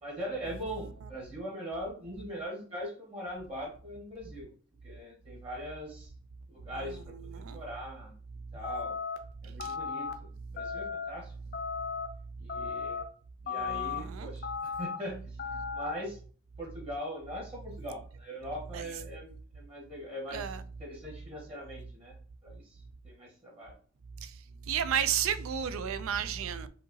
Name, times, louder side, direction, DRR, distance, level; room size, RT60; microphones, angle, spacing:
voice 1, 0.0-4.5 4.8-6.1 6.5-8.2 8.5-9.0 9.4-11.3 12.4-13.0 13.4-16.2 16.6-22.1 22.4-22.8 23.0-23.7, equal, 30° right, 1.1 m, -41 dB
voice 2, 7.3-7.6 9.6-9.8 13.5-14.3 18.7-18.9 20.3-20.6 24.2-24.4 24.7-26.7, right 8 dB, 80° right, 0.4 m, -33 dB
sound 1, 8.6-9.2 9.6-10.1 10.6-11.1 11.5-12.1 12.5-13.0 13.5-14.0 14.4-15.0 15.4-15.9, left 6 dB, 45° left, 0.5 m, -35 dB
5.0 x 2.8 x 2.7 m
head